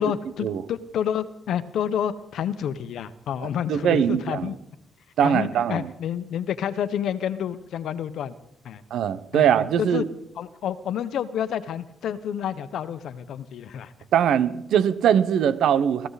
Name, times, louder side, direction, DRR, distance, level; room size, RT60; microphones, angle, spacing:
voice 1, 0.0-4.6 5.2-8.3 8.6-8.8 9.3-9.4 9.8-10.0 10.4-13.9, left 9 dB, 70° left, 14 dB, 1.0 m, -29 dB
voice 2, 3.7-4.5 5.2-5.9 8.9-10.0 14.1-16.1, right 9 dB, 75° right, 14 dB, 1.1 m, -21 dB
22.0 x 15.5 x 4.2 m, 0.83 s
cardioid pair, 90°, 0 cm